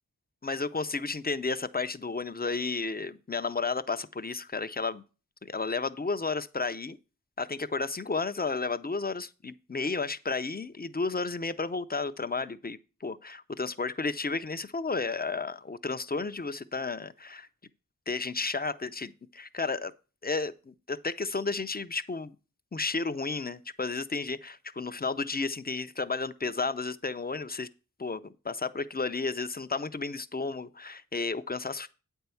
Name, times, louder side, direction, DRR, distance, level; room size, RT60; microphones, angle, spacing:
voice 1, 0.4-5.0 5.4-7.0 7.4-17.5 18.1-19.9 20.2-22.4 22.7-27.7 28.0-31.9, left 4 dB, 30° left, 0.6 m, -32 dB
8.7 x 4.6 x 6.9 m
wide cardioid pair, 50°, 33 cm